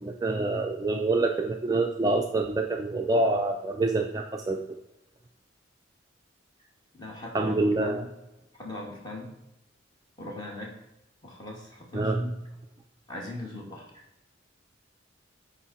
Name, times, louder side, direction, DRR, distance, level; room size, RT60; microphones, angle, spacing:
voice 1, 0.0-4.6 7.3-8.0 11.9-12.2, right 2 dB, 20° right, 2 dB, 0.5 m, -26 dB
voice 2, 6.9-8.1 8.6-9.4 10.2-10.8 11.2-12.3 13.1-14.0, left 1 dB, 20° left, -2 dB, 2.1 m, -40 dB
10.5 x 4.3 x 4.2 m, 0.92 s
head